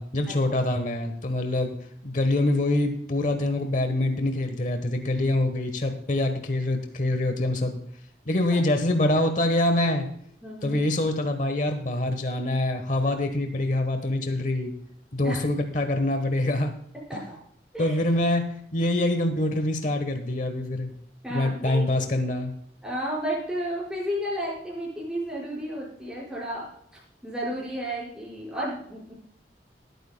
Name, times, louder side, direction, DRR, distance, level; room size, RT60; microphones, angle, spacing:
voice 1, 0.0-1.7 2.0-7.8 8.3-10.1 10.6-14.7 15.1-16.7 17.1-17.2 17.8-20.9 21.3-22.5, left 1 dB, 45° left, 7 dB, 1.1 m, -25 dB
voice 2, 10.4-10.8 15.2-15.4 17.1-17.4 17.7-18.0 21.2-21.8 22.8-26.7 27.2-29.1, equal, 5° right, -6 dB, 5.0 m, -32 dB
19.5 x 9.4 x 2.2 m, 0.65 s
head